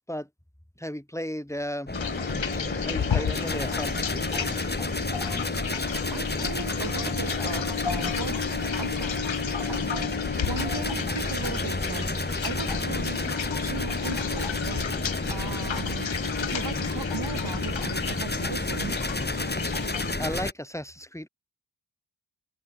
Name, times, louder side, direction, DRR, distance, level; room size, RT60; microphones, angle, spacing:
voice 1, 0.8-1.9 2.8-4.8 20.2-21.3, equal, 5° left, 7.9 m, -35 dB
sound 1, 1.9-20.1, left 8 dB, 80° left, 3.1 m, -33 dB
sound 2, 1.9-20.5, left 2 dB, 20° left, 5.0 m, -31 dB
voice 2, 6.1-8.4 8.8-13.3 13.6-14.9 15.3-16.1 16.4-18.9, right 5 dB, 60° right, 5.9 m, -38 dB
cardioid pair, 55°, 45 cm